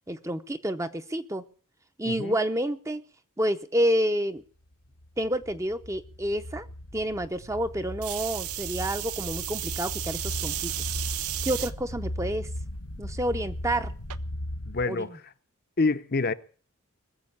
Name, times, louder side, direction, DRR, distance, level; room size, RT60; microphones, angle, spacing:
voice 1, 0.1-1.4 2.0-3.0 3.4-4.4 5.2-6.7 6.9-10.7 11.4-12.5 13.0-13.9 14.9-15.2, right 1 dB, 15° right, 0.7 m, -29 dB
voice 2, 2.1-2.4 14.7-15.3 15.8-16.3, left 3 dB, 45° left, 0.7 m, -27 dB
sound 1, 4.9-14.8, left 1 dB, 90° left, 1.4 m, -37 dB
sound 2, 8.0-11.7 12.4-12.8 14.1-14.2, right 14 dB, 85° right, 0.7 m, -33 dB
20.5 x 7.5 x 8.7 m
head